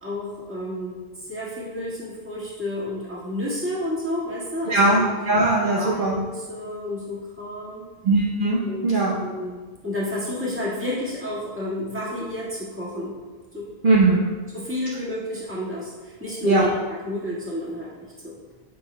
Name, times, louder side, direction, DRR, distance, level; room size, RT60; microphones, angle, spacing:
voice 1, 0.0-5.1 5.8-7.8 8.6-13.1 13.5-13.7 14.5-18.0 18.2-18.3, left 1 dB, 10° right, -8 dB, 1.7 m, -30 dB
voice 2, 4.7-6.2 8.0-9.2 13.8-14.2 16.4-16.6, right 2 dB, 55° right, -5 dB, 1.0 m, -20 dB
7.8 x 5.7 x 2.2 m, 1.3 s
omnidirectional pair, 1.1 m